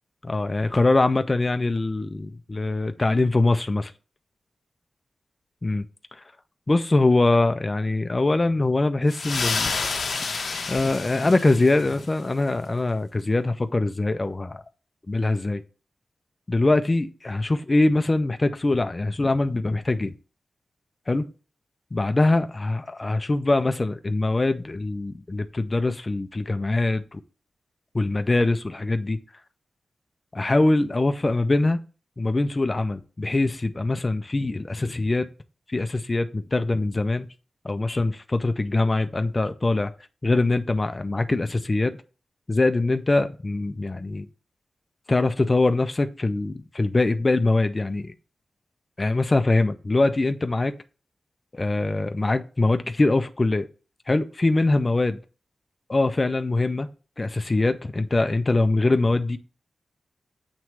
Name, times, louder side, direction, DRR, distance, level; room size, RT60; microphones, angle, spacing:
voice 1, 0.2-3.9 5.6-5.9 6.7-9.7 10.7-14.6 15.1-15.6 16.5-20.1 21.1-21.3 21.9-27.2 27.9-29.2 30.3-31.8 32.2-35.3 35.7-37.3 37.6-39.9 40.2-42.0 42.5-44.3 45.1-48.1 49.0-50.8 51.5-53.7 54.1-55.2 55.9-56.9 57.2-59.4, left 2 dB, 30° left, 0.5 m, -23 dB
sound 1, 9.1-12.1, left 4 dB, 70° left, 0.9 m, -29 dB
7.5 x 3.1 x 4.6 m
wide cardioid pair, 115°, 0 cm